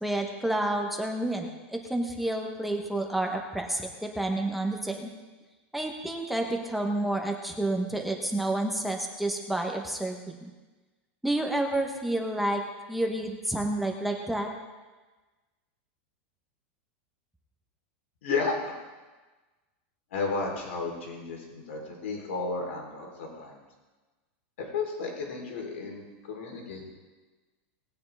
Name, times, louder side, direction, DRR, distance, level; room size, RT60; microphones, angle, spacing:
voice 1, 0.0-5.1 5.7-10.5 11.2-12.6 12.9-14.5, right 1 dB, ahead, 2 dB, 1.0 m, -29 dB
voice 2, 18.2-18.8 20.1-23.6 24.6-26.8, left 4 dB, 85° left, 0 dB, 3.7 m, -33 dB
19.0 x 9.4 x 3.5 m, 1.2 s
supercardioid pair, 170°, 7 cm